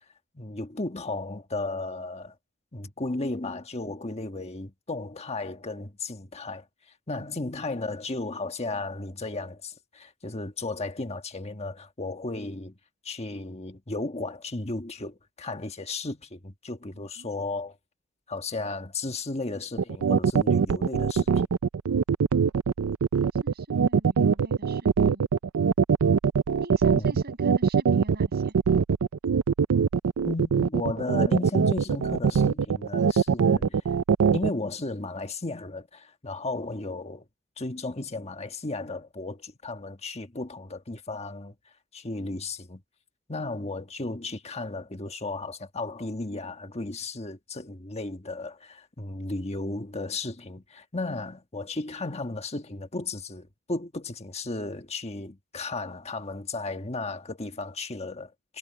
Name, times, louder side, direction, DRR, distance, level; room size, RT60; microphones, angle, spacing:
voice 1, 0.3-2.3 2.7-6.7 7.1-12.8 13.0-17.8 18.3-21.3 26.9-27.2 30.2-33.8 34.3-37.2 37.6-41.5 41.9-42.8 43.3-58.6, left 2 dB, 30° left, 1.4 m, -34 dB
voice 2, 16.9-17.3 23.3-25.3 26.6-28.5, right 1 dB, 50° right, 7.1 m, -46 dB
sound 1, 19.8-34.5, right 6 dB, 80° right, 0.4 m, -22 dB
head